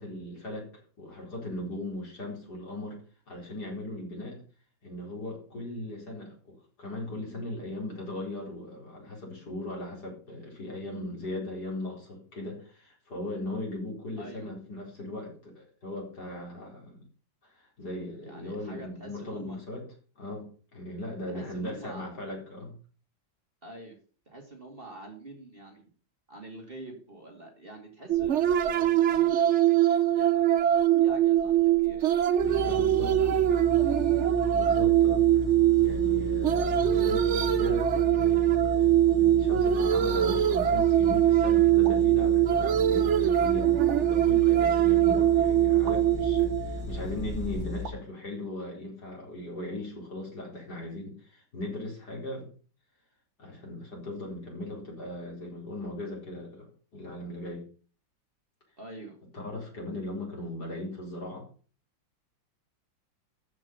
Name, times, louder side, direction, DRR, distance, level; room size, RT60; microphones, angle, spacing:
voice 1, 0.0-3.0 3.3-4.4 4.8-17.0 17.4-19.9 20.1-22.7 32.6-33.2 34.5-35.3 35.8-52.5 53.4-57.6 59.3-61.4, left 1 dB, 55° left, -1 dB, 5.1 m, -38 dB
voice 2, 14.2-14.5 18.2-19.6 21.3-22.1 23.6-24.0 24.3-25.8 26.3-29.9 30.1-30.5 31.0-32.2 32.4-33.7 58.8-59.2, right 1 dB, 30° right, 2 dB, 2.6 m, -46 dB
sound 1, 28.1-47.6, right 12 dB, 60° right, 0.7 m, -23 dB
sound 2, 32.4-47.8, left 5 dB, 40° left, 3.5 m, -36 dB
sound 3, 41.8-42.2 43.9-44.2 45.9-46.1 47.8-48.2, right 7 dB, 80° right, 2.0 m, -43 dB
13.5 x 6.0 x 6.9 m, 0.40 s
omnidirectional pair, 2.0 m